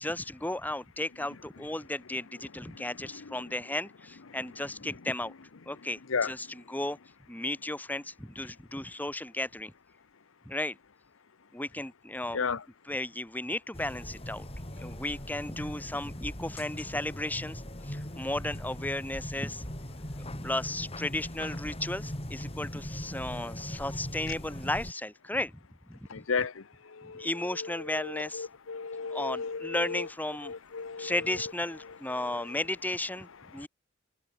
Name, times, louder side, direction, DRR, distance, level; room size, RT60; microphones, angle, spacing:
voice 1, 0.0-5.3 5.7-7.0 7.3-9.7 10.5-10.8 11.5-12.4 12.8-14.5 14.8-19.6 20.2-25.6 25.9-26.3 27.0-28.5 29.1-30.5 31.0-33.7, left 1 dB, 10° left, 1.8 m, -34 dB
sound 1, 13.7-24.9, equal, 30° left, 5.0 m, -40 dB
voice 2, 26.1-26.5 27.0-27.3 28.0-30.1 30.5-31.1, left 5 dB, 85° left, 0.8 m, -33 dB
head